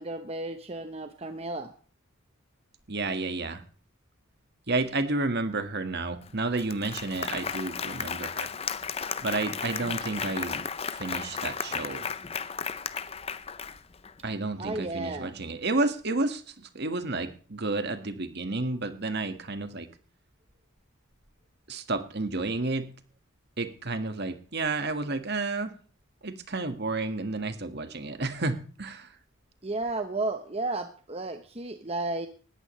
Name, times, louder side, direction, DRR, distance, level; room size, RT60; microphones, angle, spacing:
voice 1, 0.0-1.7 14.6-15.4 29.6-32.3, right 2 dB, 30° right, 7 dB, 1.0 m, -33 dB
voice 2, 2.9-3.6 4.7-8.5 9.2-10.6 11.0-12.1 14.2-19.9 21.7-22.9 23.6-25.7 26.2-29.1, right 3 dB, 50° right, 8 dB, 1.8 m, -31 dB
Applause, 6.2-6.3 6.6-14.1, left 6 dB, 30° left, 0.6 m, -34 dB
19.5 x 14.0 x 3.2 m, 0.40 s
head